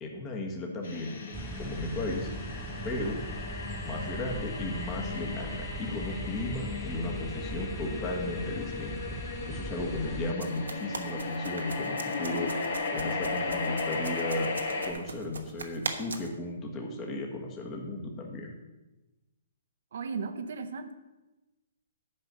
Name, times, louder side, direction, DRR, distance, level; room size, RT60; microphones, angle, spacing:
voice 1, 0.0-1.1 1.6-2.3 2.8-3.2 3.8-9.2 9.5-12.5 12.9-14.5 14.8-18.5, left 2 dB, 25° left, 1 dB, 1.5 m, -35 dB
sound 1, 0.8-14.9, left 4 dB, 65° left, 1.7 m, -36 dB
sound 2, 1.3-10.3, right 2 dB, 10° right, 0.5 m, -40 dB
sound 3, 10.4-16.3, right 4 dB, 85° right, 1.1 m, -40 dB
voice 2, 19.9-20.9, right 5 dB, 65° right, 8 dB, 0.8 m, -35 dB
9.7 x 5.3 x 6.7 m, 1.1 s
hypercardioid pair, 140°, 0 cm